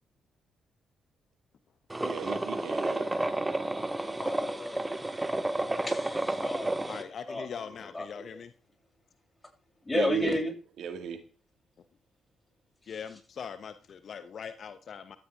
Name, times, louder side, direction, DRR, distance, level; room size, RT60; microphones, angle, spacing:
sound 1, 1.9-7.0, right 2 dB, 15° right, 1.8 m, -31 dB
voice 1, 2.0-3.1 9.9-10.4 10.8-11.2, right 8 dB, 60° right, 8 dB, 2.0 m, -35 dB
voice 2, 3.9-4.9 5.8-7.0 7.3-7.5 7.9-8.2 9.8-10.5, left 2 dB, 20° left, 2 dB, 7.1 m, -32 dB
voice 3, 6.9-8.5 12.9-15.2, left 7 dB, 50° left, 12 dB, 1.0 m, -41 dB
17.0 x 13.0 x 3.5 m, 0.37 s
figure-of-eight pair, 40°, 0 cm